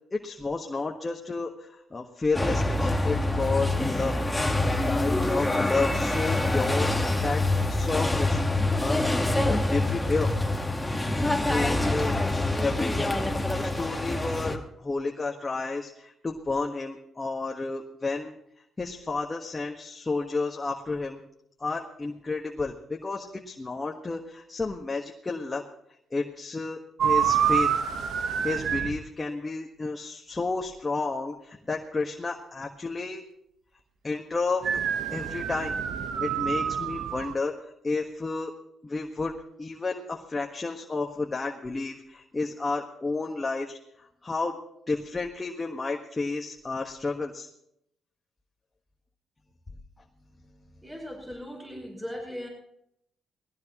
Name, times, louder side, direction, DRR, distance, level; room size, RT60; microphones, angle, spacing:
voice 1, 0.1-4.2 4.6-9.1 9.4-10.3 11.5-13.1 13.6-18.3 18.8-21.2 21.6-25.6 26.1-27.7 28.4-33.2 34.0-34.7 35.1-35.7 36.2-38.5 38.8-44.6 44.9-47.5, left 3 dB, 25° left, 1 dB, 1.5 m, -31 dB
sound 1, 2.3-14.6, left 2 dB, 10° left, 1.5 m, -26 dB
sound 2, 27.0-29.0 34.6-37.3, right 8 dB, 70° right, 1.1 m, -27 dB
voice 2, 50.8-52.5, equal, 15° right, 0 dB, 5.2 m, -38 dB
20.0 x 16.5 x 3.0 m, 0.75 s
cardioid pair, 90°, 0 cm